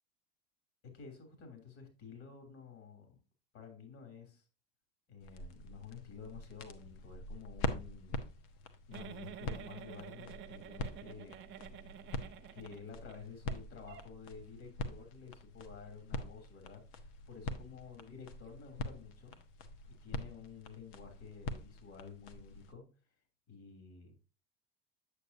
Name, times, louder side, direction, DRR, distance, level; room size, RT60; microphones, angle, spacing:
voice 1, 0.9-3.2 3.5-4.4 5.1-8.2 8.9-11.4 12.5-19.4 19.9-22.9 23.5-24.1, left 6 dB, 50° left, 5 dB, 3.0 m, -51 dB
sound 1, 5.2-22.7, left 2 dB, 70° left, 1.1 m, -44 dB
Giggle, 8.9-13.2 13.5-13.6 13.9-14.0, right 10 dB, 40° right, 0.8 m, -49 dB
8.4 x 6.7 x 2.7 m, 0.33 s
hypercardioid pair, 95°, 30 cm